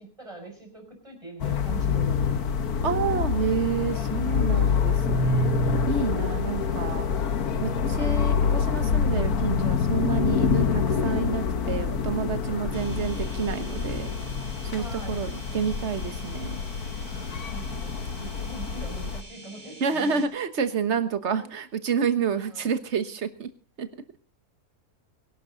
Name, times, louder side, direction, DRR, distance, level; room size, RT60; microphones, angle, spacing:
voice 1, 0.0-2.4 14.8-15.2 17.1-20.3 21.3-21.5 22.3-22.7, right 3 dB, 20° right, 3 dB, 5.7 m, -42 dB
sound 1, 1.4-19.2, left 6 dB, 75° left, 1.7 m, -26 dB
voice 2, 2.8-5.5 5.9-7.1 7.6-14.1 14.6-16.6 19.8-23.5 23.8-23.9, right 6 dB, 50° right, 11 dB, 1.6 m, -29 dB
sound 2, 12.7-20.3, right 1 dB, 75° right, 5.3 m, -46 dB
22.5 x 12.0 x 3.9 m, 0.35 s
omnidirectional pair, 1.6 m